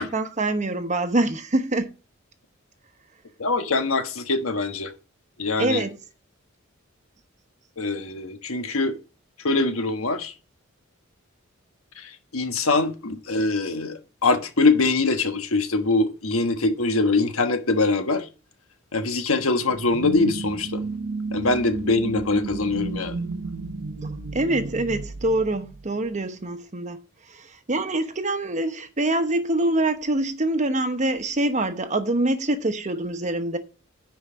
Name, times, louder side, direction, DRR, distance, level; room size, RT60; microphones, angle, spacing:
voice 1, 0.0-1.9 5.6-6.0 24.3-27.0 27.7-33.6, right 2 dB, 35° right, 1.0 m, -25 dB
voice 2, 3.4-4.9 5.4-5.9 7.8-9.0 9.4-10.3 12.0-18.3 18.9-20.8 21.3-23.2, left 3 dB, 85° left, 1.3 m, -23 dB
sound 1, 19.7-26.1, right 3 dB, 75° right, 0.7 m, -32 dB
10.0 x 4.8 x 5.0 m
head